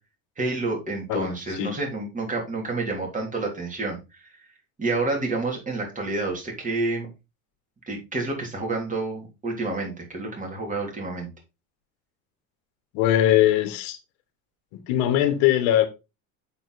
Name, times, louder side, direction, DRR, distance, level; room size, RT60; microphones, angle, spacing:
voice 1, 0.4-4.3 4.8-7.1 7.9-11.3, right 3 dB, 20° right, 3.4 m, -29 dB
voice 2, 1.1-1.7 12.9-14.0 14.9-15.9, left 12 dB, 70° left, 1.7 m, -21 dB
7.9 x 4.5 x 4.1 m
supercardioid pair, 115°, 41 cm